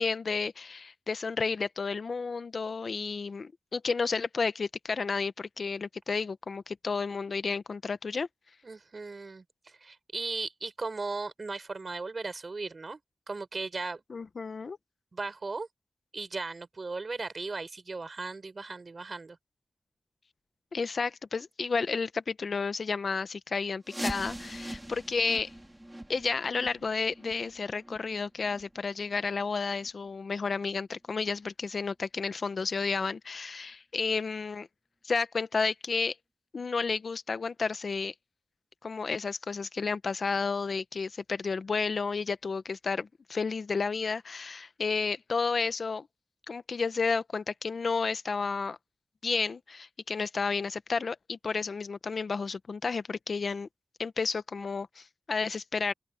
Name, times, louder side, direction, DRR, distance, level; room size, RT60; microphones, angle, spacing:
voice 1, 0.0-8.3 14.1-14.8 20.7-25.5 26.1-34.7 35.0-36.2 36.5-38.1 38.8-46.1 46.5-48.8 49.2-53.7 54.0-55.9, left 4 dB, 70° left, 0.9 m, -31 dB
voice 2, 8.6-13.0 13.3-14.0 15.1-15.7 16.1-19.4, right 3 dB, 55° right, 6.3 m, -37 dB
sound 1, 23.8-29.4 29.8-29.9 30.4-30.5 31.1-31.2 31.8-31.9, right 1 dB, 15° right, 1.9 m, -42 dB
open air
cardioid pair, 55°, 0 cm